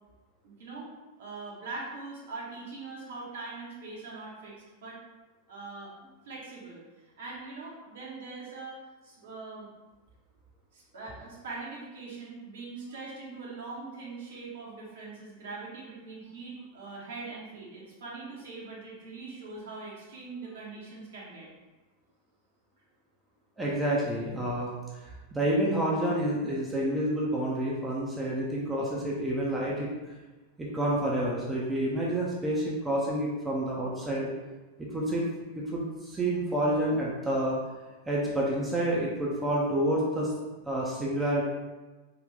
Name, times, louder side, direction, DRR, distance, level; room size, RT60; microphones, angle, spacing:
voice 1, 0.4-5.0 5.5-5.9 6.2-6.8 7.2-8.8 9.0-9.7 10.7-21.5, right 3 dB, 60° right, -5 dB, 1.2 m, -42 dB
voice 2, 23.6-24.7 25.0-29.9 30.6-34.3 34.8-35.3 35.5-37.6 38.1-40.3 40.7-41.4, right 1 dB, 15° right, -4 dB, 0.7 m, -29 dB
3.9 x 2.5 x 3.3 m, 1.2 s
figure-of-eight pair, 90°, 0 cm